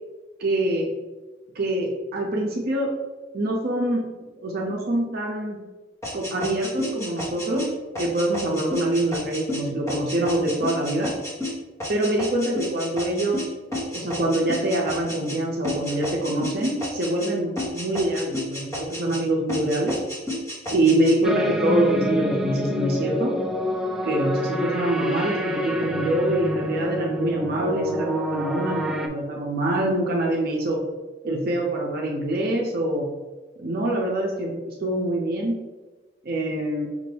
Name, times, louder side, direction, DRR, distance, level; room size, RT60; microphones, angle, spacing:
voice 1, 0.4-0.9 1.5-2.9 3.3-4.0 4.4-5.6 6.1-7.6 8.0-11.1 11.9-13.5 13.9-20.0 20.7-23.3 24.0-30.8 31.2-33.1 33.6-35.6 36.2-36.9, right 1 dB, 55° right, -1 dB, 0.6 m, -25 dB
sound 1, 6.0-15.4 15.6-17.3 17.6-19.2 19.5-21.2, left 1 dB, 15° left, 1.1 m, -32 dB
sound 2, 21.2-29.1, left 1 dB, 5° right, 0.4 m, -27 dB
5.2 x 2.5 x 3.3 m, 1.2 s
head